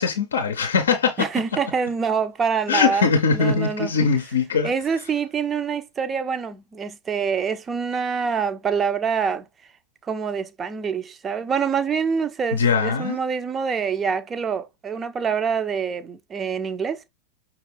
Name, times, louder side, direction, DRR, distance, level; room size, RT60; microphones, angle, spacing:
voice 1, 0.0-1.3 2.7-4.7 12.6-13.2, left 5 dB, 65° left, 0.6 m, -21 dB
voice 2, 1.2-3.9 4.6-9.5 10.0-17.1, right 6 dB, 20° right, 0.5 m, -26 dB
5.8 x 2.4 x 3.3 m
figure-of-eight pair, 90°, 0 cm